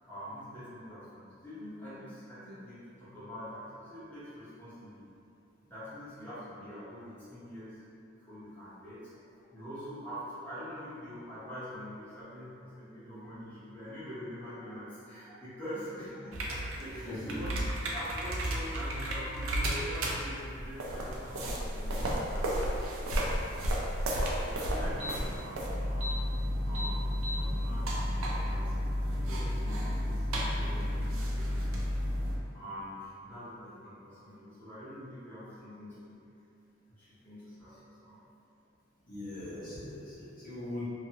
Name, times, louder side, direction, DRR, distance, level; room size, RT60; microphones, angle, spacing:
voice 1, 0.1-5.0 5.6-7.8 8.2-9.1 9.5-17.6 17.9-23.8 24.3-26.2 26.6-28.7 29.1-31.6 32.5-36.2 37.0-38.2, equal, 10° left, -14 dB, 0.7 m, -45 dB
sound 1, 16.3-32.4, equal, 90° right, 0.5 m, -32 dB
voice 2, 17.0-17.4 39.1-40.8, left 1 dB, 40° left, -11 dB, 0.9 m, -40 dB
2.6 x 2.6 x 2.7 m, 2.6 s
head